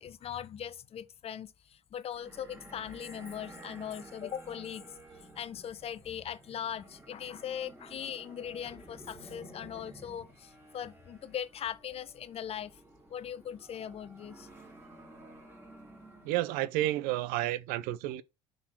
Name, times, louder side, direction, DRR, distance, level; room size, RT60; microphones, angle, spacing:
voice 1, 0.0-4.9 5.4-12.8 13.1-14.5, left 9 dB, 40° left, 0.6 m, -40 dB
sound 1, 2.1-16.6, right 2 dB, 15° right, 3.4 m, -53 dB
voice 2, 16.2-18.2, right 14 dB, 70° right, 0.6 m, -31 dB
5.8 x 3.9 x 4.4 m
supercardioid pair, 85°, 15 cm